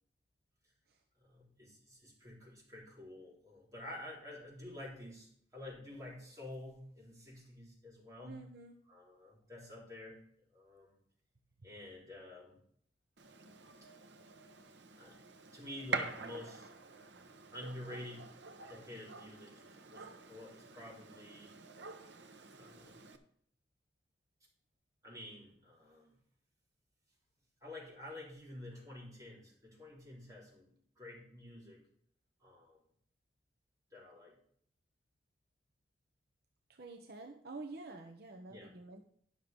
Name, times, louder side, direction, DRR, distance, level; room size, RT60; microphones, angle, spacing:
voice 1, 1.2-8.4 8.9-10.2 10.5-11.0 11.6-12.6 15.0-15.2 15.5-16.7 17.5-18.3 18.7-21.5 22.6-23.0 25.0-26.1 27.6-31.8 32.4-32.8 33.9-34.4 38.5-38.7, left 1 dB, 20° right, -4 dB, 4.1 m, -49 dB
voice 2, 8.2-8.8 11.6-11.7 36.7-39.0, right 3 dB, 60° right, 3 dB, 0.9 m, -49 dB
Gunshot gunfire, 13.2-23.2, right 4 dB, 85° right, 1.1 m, -46 dB
11.0 x 6.5 x 5.3 m, 0.64 s
head